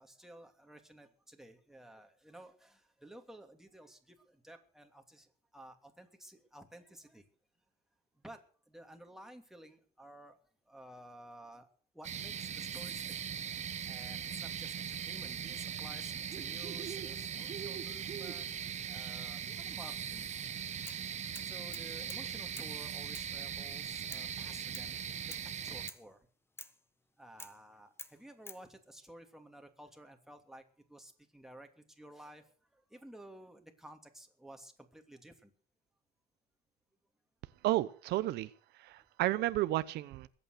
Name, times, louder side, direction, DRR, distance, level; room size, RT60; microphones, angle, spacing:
voice 1, 0.0-7.3 8.1-10.4 10.7-11.7 11.9-13.1 13.9-20.3 21.4-26.3 27.2-35.5, right 1 dB, ahead, 4 dB, 2.8 m, -54 dB
sound 1, 12.0-25.9, right 8 dB, 40° right, 1.1 m, -40 dB
sound 2, 20.9-21.1 21.3-22.3 22.6-22.7 23.1-23.3 24.1-24.3 24.7-24.9 25.3-25.5 25.9-26.1 26.6-26.8 27.4-27.6 28.0-28.6, left 2 dB, 15° left, 1.4 m, -49 dB
voice 2, 37.6-38.5 38.8-40.3, right 16 dB, 80° right, 15 dB, 0.8 m, -32 dB
21.5 x 8.8 x 6.7 m, 0.43 s
cardioid pair, 110°, 17 cm